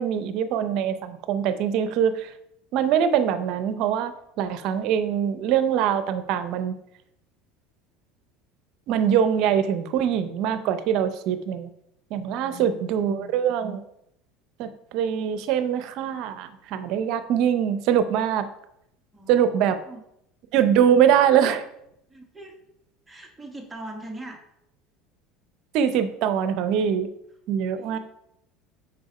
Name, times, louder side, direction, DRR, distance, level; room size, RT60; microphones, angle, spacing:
voice 1, 0.0-2.3 2.7-6.7 8.9-11.7 12.1-13.8 14.6-18.5 19.3-19.8 20.5-21.6 25.7-27.1 27.5-28.0, right 9 dB, 65° right, 11 dB, 0.7 m, -23 dB
voice 2, 12.3-13.3 19.1-20.0 22.1-22.6 23.1-24.4 27.8-28.0, right 1 dB, 10° right, 1 dB, 1.5 m, -41 dB
6.1 x 4.9 x 4.9 m, 0.78 s
supercardioid pair, 105°, 0 cm